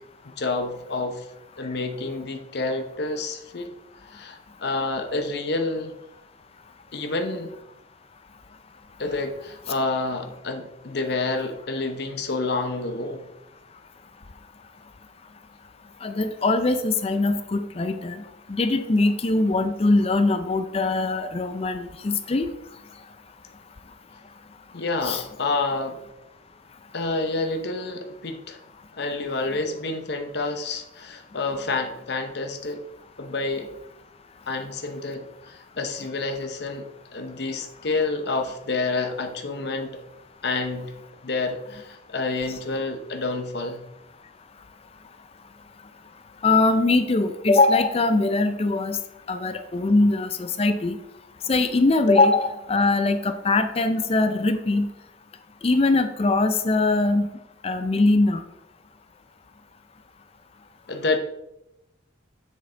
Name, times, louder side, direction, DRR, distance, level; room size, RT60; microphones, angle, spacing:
voice 1, 0.2-1.3 1.6-3.7 4.1-5.9 6.9-7.5 9.0-13.3 24.7-26.0 26.9-28.6 28.9-32.8 33.2-33.7 34.5-40.0 40.4-40.9 41.2-43.8 60.9-61.2, left 3 dB, 60° left, 6 dB, 0.8 m, -28 dB
voice 2, 16.0-18.2 18.5-22.5 25.0-25.2 46.4-49.0 49.3-51.0 51.5-54.9 55.6-57.3 57.6-58.4, left 2 dB, 30° left, 9 dB, 0.4 m, -21 dB
7.7 x 6.6 x 3.3 m, 0.88 s
head